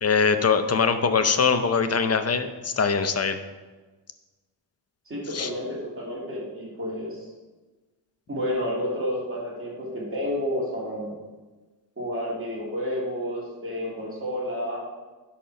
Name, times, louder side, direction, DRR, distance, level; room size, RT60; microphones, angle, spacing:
voice 1, 0.0-3.4 5.3-5.5, left 5 dB, 35° left, 9 dB, 0.7 m, -22 dB
voice 2, 5.0-7.2 8.3-11.1 12.0-14.8, equal, 30° right, -6 dB, 3.1 m, -30 dB
10.5 x 4.3 x 6.4 m, 1.3 s
wide cardioid pair, 150°, 44 cm